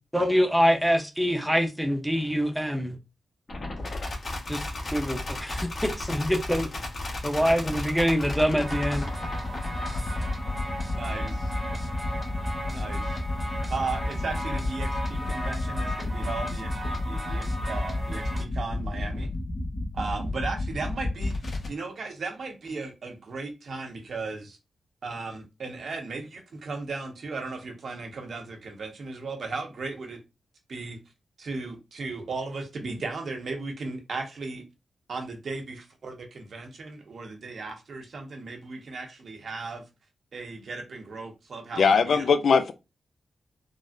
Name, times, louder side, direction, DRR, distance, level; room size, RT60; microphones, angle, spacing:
voice 1, 0.1-2.9 4.5-4.6 4.9-5.2 6.1-6.7 7.2-9.1, equal, ahead, 0.6 m, -24 dB
sound 1, 3.5-21.7, left 2 dB, 50° left, 1.0 m, -32 dB
sound 2, 8.6-18.4, equal, 20° right, 0.9 m, -36 dB
voice 2, 10.9-11.5 12.7-13.2 13.7-19.3 19.9-21.3 21.7-24.6 25.0-30.2 30.7-31.0 31.4-34.6 35.1-39.8 40.3-42.2, right 3 dB, 65° right, 0.8 m, -36 dB
voice 3, 41.7-42.7, left 5 dB, 75° left, 0.4 m, -20 dB
3.7 x 2.1 x 2.5 m
cardioid pair, 80°, 0 cm